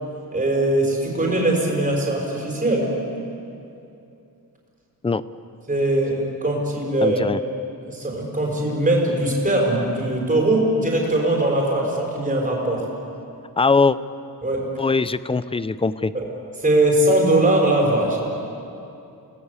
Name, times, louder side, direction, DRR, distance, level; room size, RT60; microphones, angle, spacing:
voice 1, 0.3-2.9 5.7-7.2 7.9-12.9 14.4-14.7 16.1-16.2 16.6-18.2, right 1 dB, 20° right, -1 dB, 5.5 m, -21 dB
voice 2, 7.0-7.4 13.6-14.0 14.8-16.1, left 4 dB, 15° left, 15 dB, 0.5 m, -21 dB
29.0 x 19.5 x 8.3 m, 2.7 s
wide cardioid pair, 165°, 38 cm